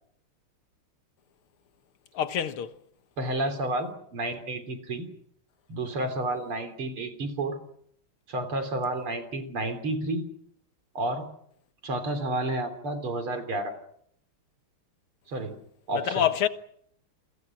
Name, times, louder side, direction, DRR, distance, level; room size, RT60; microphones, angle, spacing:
voice 1, 2.1-2.8 15.9-16.5, left 10 dB, 80° left, 2.2 m, -26 dB
voice 2, 3.2-5.1 5.7-7.6 8.3-10.2 10.9-11.3 11.8-13.8 15.3-15.6 15.9-16.3, right 2 dB, 80° right, 4.4 m, -30 dB
28.5 x 24.5 x 6.2 m
omnidirectional pair, 2.4 m